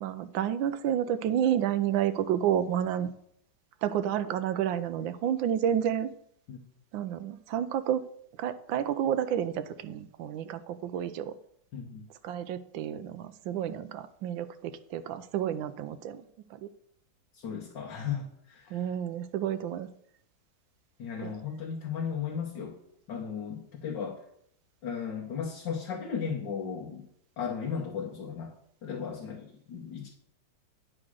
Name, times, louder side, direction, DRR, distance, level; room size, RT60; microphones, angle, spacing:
voice 1, 0.0-3.1 3.8-6.1 6.9-8.0 8.4-11.3 12.2-16.2 16.5-16.7 18.7-19.9 21.2-21.3, right 10 dB, 85° right, 13 dB, 1.4 m, -30 dB
voice 2, 11.7-12.1 17.3-18.9 21.0-22.8 23.1-24.2 24.8-27.1 27.4-28.6 28.8-30.1, left 6 dB, 70° left, -1 dB, 1.8 m, -35 dB
9.8 x 4.9 x 6.3 m, 0.70 s
omnidirectional pair, 2.1 m